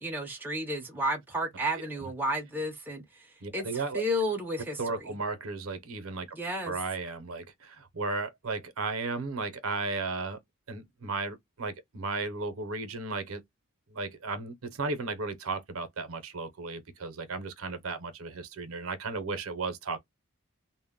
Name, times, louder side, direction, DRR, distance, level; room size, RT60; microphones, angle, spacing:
voice 1, 0.0-5.1 6.3-6.8, equal, 10° right, 0.5 m, -32 dB
voice 2, 3.4-4.0 4.8-6.3 6.6-10.4 10.7-13.4 13.9-20.0, right 3 dB, 70° right, 0.6 m, -35 dB
2.1 x 2.0 x 3.4 m
head